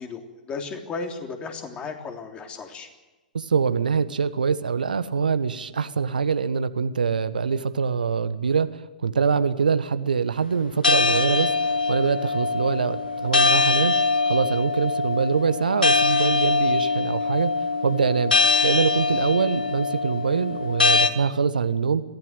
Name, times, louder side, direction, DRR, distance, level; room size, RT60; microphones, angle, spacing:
voice 1, 0.0-2.9, left 4 dB, 20° left, 4 dB, 3.3 m, -35 dB
voice 2, 3.3-13.9 14.2-18.3 18.6-22.0, right 5 dB, 75° right, 12 dB, 1.3 m, -24 dB
sound 1, 10.8-21.1, left 3 dB, 80° left, 1.6 m, -23 dB
22.5 x 16.0 x 9.0 m, 1.1 s
figure-of-eight pair, 110°, 5 cm